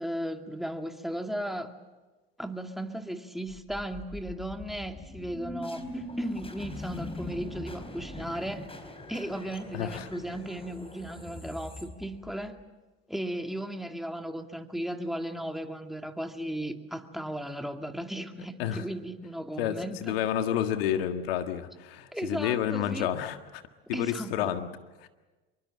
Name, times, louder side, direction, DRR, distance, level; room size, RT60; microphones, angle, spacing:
voice 1, 0.0-1.7 2.4-8.7 9.1-12.6 13.1-20.1 22.1-23.1 23.9-24.5, right 1 dB, ahead, 5 dB, 2.4 m, -36 dB
sound 1, 3.5-12.6, left 1 dB, 20° left, 4.4 m, -41 dB
voice 2, 9.7-10.1 18.6-18.8 19.6-23.6 23.9-24.7 25.0-25.1, left 10 dB, 85° left, 7 dB, 1.8 m, -30 dB
26.5 x 23.5 x 7.7 m, 1.2 s
hypercardioid pair, 80°, 29 cm